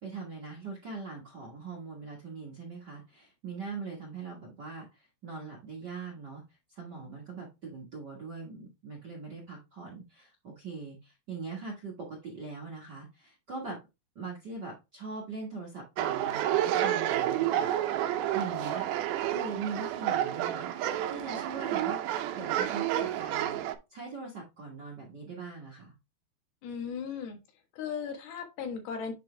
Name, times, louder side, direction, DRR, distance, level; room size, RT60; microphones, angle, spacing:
voice 1, 0.0-6.4 6.7-13.8 14.1-17.7 18.0-18.9 19.3-22.0 22.3-23.6 23.9-25.9, right 4 dB, 50° right, -3 dB, 1.3 m, -41 dB
sound 1, 16.0-23.7, right 12 dB, 85° right, 2.5 m, -30 dB
voice 2, 26.6-27.4 27.7-29.1, left 6 dB, 90° left, 4 dB, 3.3 m, -36 dB
9.2 x 3.4 x 3.3 m, 0.25 s
omnidirectional pair, 4.3 m